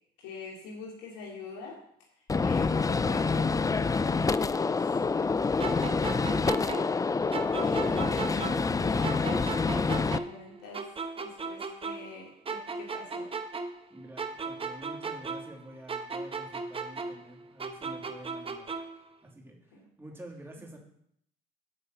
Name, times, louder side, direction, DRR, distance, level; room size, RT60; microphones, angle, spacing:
voice 1, 0.2-1.8 2.4-4.8 5.1-10.9 11.1-13.3 19.7-19.8, left 3 dB, 80° left, -3 dB, 2.8 m, -45 dB
Gunshot gunfire, 2.3-10.2, left 4 dB, 20° left, 0.5 m, -27 dB
sound 1, 5.6-8.8 9.0-12.2 12.5-15.6 15.9-19.0, right 4 dB, 30° right, 1.2 m, -37 dB
voice 2, 13.9-18.7 19.2-20.8, right 1 dB, 15° right, -1 dB, 3.0 m, -48 dB
8.9 x 5.4 x 8.0 m, 0.69 s
supercardioid pair, 65°, 18 cm